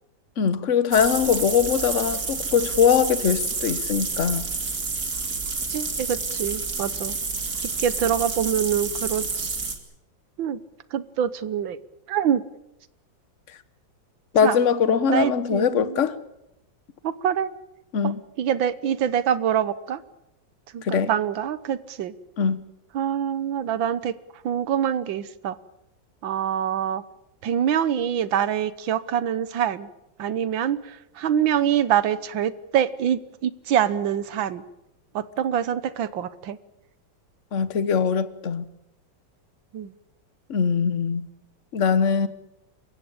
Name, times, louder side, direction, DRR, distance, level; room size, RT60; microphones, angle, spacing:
voice 1, 0.4-4.5 14.3-16.2 17.9-18.2 20.8-21.1 22.4-22.6 37.5-38.7 40.5-41.3 41.7-42.3, left 7 dB, 45° left, 1.3 m, -22 dB
sound 1, 0.9-9.7, right 4 dB, 50° right, 3.2 m, -29 dB
voice 2, 5.7-7.2 7.6-9.6 10.4-10.6 10.9-11.8 12.1-12.4 14.4-14.6 15.1-16.0 17.0-17.5 18.0-18.1 18.4-20.0 20.7-22.1 22.9-24.1 24.4-25.6 26.2-27.0 27.4-29.9 30.2-34.6 35.1-36.6 39.7-39.9, right 9 dB, 80° right, 1.8 m, -25 dB
28.0 x 16.0 x 8.8 m
omnidirectional pair, 2.1 m